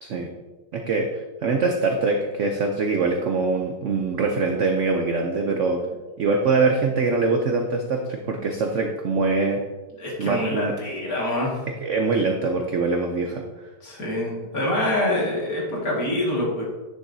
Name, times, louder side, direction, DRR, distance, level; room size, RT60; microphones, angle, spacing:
voice 1, 0.7-5.8 6.2-9.6 10.2-10.7 11.8-13.5, right 3 dB, 70° right, 3 dB, 0.7 m, -23 dB
voice 2, 10.0-11.6 13.8-16.6, left 1 dB, 50° left, -4 dB, 2.3 m, -25 dB
10.0 x 6.4 x 2.7 m, 1.2 s
omnidirectional pair, 2.0 m